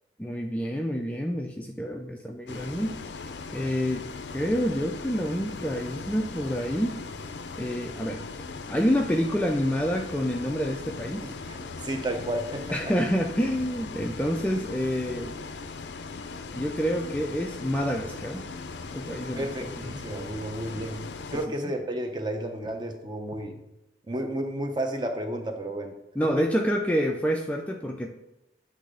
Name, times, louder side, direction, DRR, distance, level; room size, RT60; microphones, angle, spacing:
voice 1, 0.2-3.2 3.5-7.0 7.6-8.2 8.7-11.3 12.7-15.4 16.5-18.5 18.9-20.0 26.2-28.2, equal, 10° left, 2 dB, 0.3 m, -28 dB
Bus, 2.5-21.5, left 4 dB, 80° left, 0.5 m, -39 dB
voice 2, 11.2-12.9 19.3-21.0 21.3-23.6 24.1-26.0 26.4-26.5, right 1 dB, 25° right, 5 dB, 0.7 m, -32 dB
8.2 x 3.3 x 5.0 m, 0.95 s
head